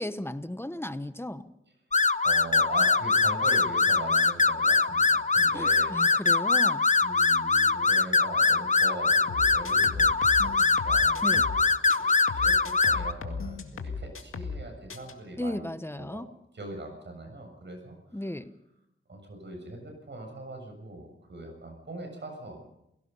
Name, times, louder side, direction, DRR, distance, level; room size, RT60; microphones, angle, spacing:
voice 1, 0.0-1.4 5.5-6.9 11.2-11.5 15.4-16.3 18.1-18.5, left 1 dB, 10° left, 12 dB, 1.1 m, -35 dB
sound 1, 1.9-13.1, left 4 dB, 35° left, 0.9 m, -23 dB
voice 2, 2.2-6.0 7.0-10.1 10.4-10.6 10.8-11.7 12.0-15.6 16.0-16.2 16.5-18.0 19.1-22.6, right 2 dB, 60° right, 3 dB, 7.0 m, -41 dB
sound 2, 9.3-11.6 11.9-14.6 14.9-15.1, left 4 dB, 90° left, 2.1 m, -36 dB
28.5 x 17.5 x 5.5 m, 0.85 s
cardioid pair, 65°, 21 cm